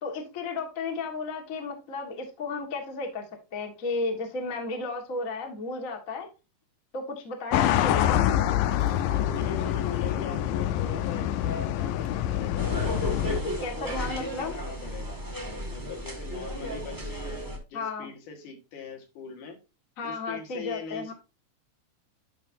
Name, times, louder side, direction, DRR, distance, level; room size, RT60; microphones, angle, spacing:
voice 1, 0.0-3.3 3.5-6.3 6.9-8.2 13.6-14.6 17.7-18.1 20.0-21.1, left 3 dB, 35° left, 3 dB, 1.3 m, -33 dB
sound 1, 7.5-13.4, left 11 dB, 80° left, 2.3 m, -26 dB
sound 2, 8.2-11.1 11.5-11.6 12.0-12.2 13.3-13.4, right 9 dB, 70° right, 1.7 m, -45 dB
voice 2, 9.1-12.7 13.2-15.2 15.7-19.6 20.0-21.1, left 6 dB, 65° left, 2 dB, 3.1 m, -41 dB
sound 3, 12.6-17.6, equal, 15° right, 0.8 m, -34 dB
12.0 x 5.5 x 2.7 m, 0.28 s
omnidirectional pair, 4.0 m